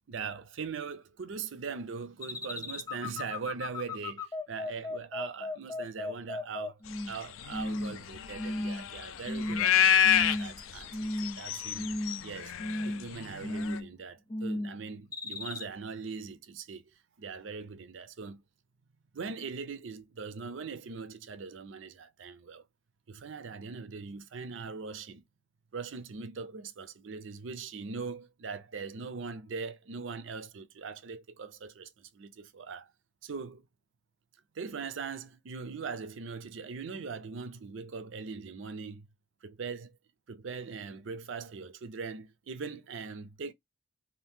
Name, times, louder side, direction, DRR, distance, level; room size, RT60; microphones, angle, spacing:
voice 1, 0.1-6.8 7.1-9.8 10.1-11.9 12.2-12.6 12.8-16.8 17.2-18.4 19.1-22.6 23.1-25.2 25.7-32.9 33.2-33.6 34.5-39.1 39.4-39.9 40.3-43.5, right 5 dB, 70° right, 0.5 m, -41 dB
sound 1, 2.2-7.2 7.5-8.0 8.4-8.9 9.3-9.7 10.0-10.6 10.9-11.4 11.8-12.3 12.6-13.1 13.4-13.9 14.3-14.8 15.1-15.6, left 1 dB, 20° left, 0.5 m, -35 dB
sound 2, 7.0-13.8, left 9 dB, 80° left, 0.4 m, -29 dB
2.7 x 2.5 x 3.5 m
head